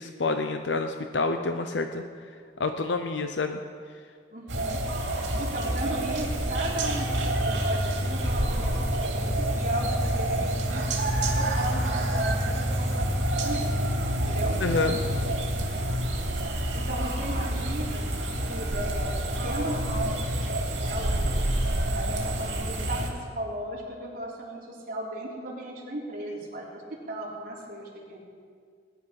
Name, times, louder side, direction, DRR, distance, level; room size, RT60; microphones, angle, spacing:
voice 1, 0.0-2.0 2.6-3.6 14.6-15.0, left 3 dB, 85° left, 7 dB, 0.7 m, -28 dB
voice 2, 4.3-4.8 5.4-13.8 14.2-14.6 16.7-18.1 18.3-20.2 20.5-21.5 21.9-23.1 23.4-26.8 27.1-28.2, right 1 dB, 50° right, -4 dB, 3.5 m, -36 dB
sound 1, 4.5-23.1, right 1 dB, 85° right, 2.5 m, -27 dB
19.5 x 10.5 x 5.9 m, 2.1 s
head